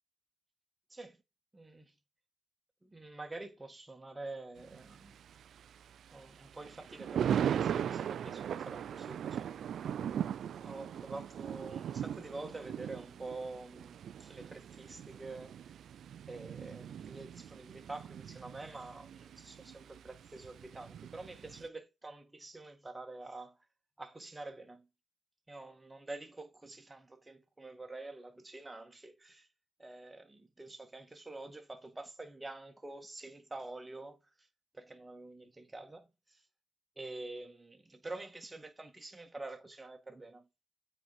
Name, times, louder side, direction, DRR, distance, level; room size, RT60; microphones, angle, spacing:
voice 1, 1.5-1.9 2.8-5.2 6.1-9.6 10.5-15.7 16.3-23.6 24.0-24.9 25.5-29.5 29.8-34.2 34.7-36.4 37.0-40.5, right 2 dB, 15° right, 1.8 m, -47 dB
Thunder, 4.6-21.7, right 9 dB, 65° right, 0.4 m, -39 dB
8.7 x 4.5 x 4.2 m
cardioid pair, 90°, 0 cm